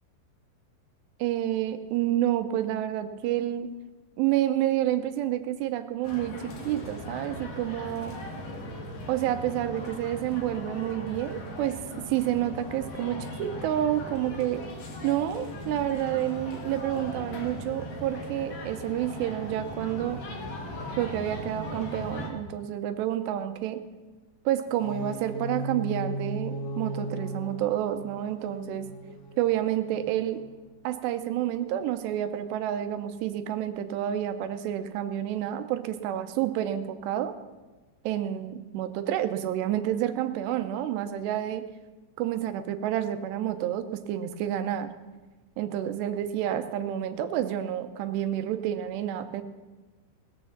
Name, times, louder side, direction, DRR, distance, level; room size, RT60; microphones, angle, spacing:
voice 1, 1.2-3.7 4.2-8.1 9.1-11.8 12.1-14.6 15.0-20.2 21.0-23.8 24.5-28.9 29.4-30.4 30.8-37.3 38.0-41.6 42.2-44.9 45.6-49.4, right 12 dB, 80° right, 9 dB, 2.6 m, -29 dB
sound 1, 6.0-22.3, left 1 dB, 50° left, 2.2 m, -39 dB
sound 2, 24.7-30.6, right 1 dB, 80° left, 1.6 m, -37 dB
20.0 x 6.8 x 7.2 m, 1.2 s
omnidirectional pair, 5.4 m